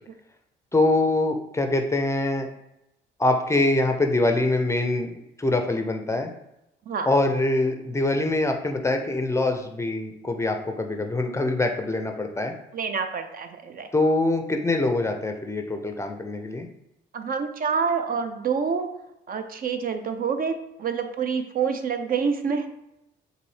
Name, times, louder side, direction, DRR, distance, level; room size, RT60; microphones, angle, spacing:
voice 1, 0.7-2.5 3.2-5.1 5.4-6.3 7.1-12.5 13.9-16.7, left 2 dB, 15° left, 4 dB, 0.4 m, -24 dB
voice 2, 12.7-13.9 17.1-18.9 19.3-22.7, right 6 dB, 45° right, 7 dB, 0.4 m, -27 dB
4.0 x 2.7 x 3.2 m, 0.86 s
cardioid pair, 90°, 20 cm